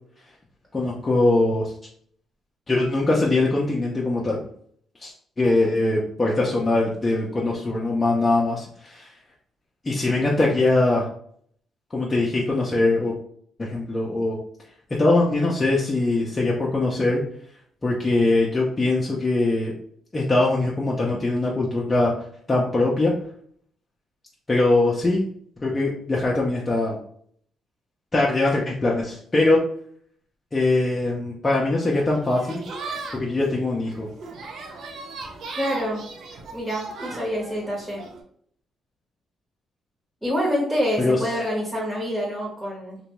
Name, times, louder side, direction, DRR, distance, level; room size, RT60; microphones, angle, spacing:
voice 1, 0.7-1.7 2.7-4.4 5.0-9.1 9.8-11.1 11.9-13.1 13.6-14.4 15.0-17.2 17.8-19.7 20.1-22.1 22.5-23.1 24.5-25.2 25.6-27.0 28.1-29.6 30.5-32.6 33.1-34.1 41.0-41.2, left 2 dB, 25° left, -4 dB, 0.5 m, -22 dB
sound 1, 31.9-38.2, right 3 dB, 65° right, 0.6 m, -38 dB
voice 2, 35.6-36.0 36.5-38.0 40.2-43.0, equal, 5° right, -5 dB, 1.0 m, -26 dB
2.6 x 2.2 x 3.0 m, 0.63 s
cardioid pair, 90°, 0 cm